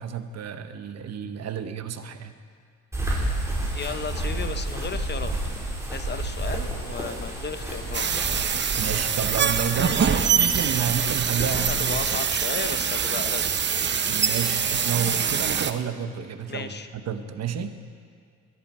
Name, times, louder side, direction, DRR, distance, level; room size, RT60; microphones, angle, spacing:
voice 1, 0.0-2.3 8.8-12.0 14.1-17.7, right 7 dB, 60° right, 9 dB, 1.1 m, -30 dB
sound 1, 2.9-12.1, right 1 dB, 10° right, 4.1 m, -31 dB
voice 2, 3.7-5.3 5.9-8.2 11.4-13.7 16.5-16.9, left 5 dB, 35° left, 9 dB, 0.9 m, -34 dB
sound 2, 7.9-15.7, right 7 dB, 35° right, 0.7 m, -24 dB
22.0 x 11.0 x 4.4 m, 2.2 s
cardioid pair, 90°, 30 cm